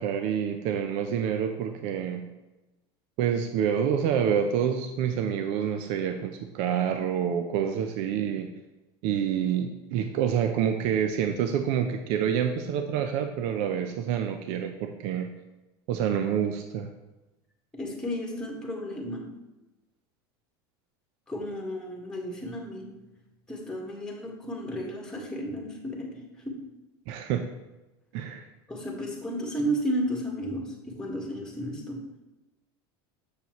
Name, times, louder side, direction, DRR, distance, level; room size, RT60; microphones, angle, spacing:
voice 1, 0.0-2.2 3.2-8.5 9.0-15.3 15.9-16.9 27.1-27.5 28.1-28.4, right 8 dB, 60° right, 6 dB, 0.6 m, -27 dB
voice 2, 17.7-19.3 21.3-23.2 23.5-26.6 28.7-32.1, equal, 5° left, -1 dB, 1.6 m, -33 dB
6.8 x 6.7 x 3.0 m, 1.0 s
supercardioid pair, 115°, 13 cm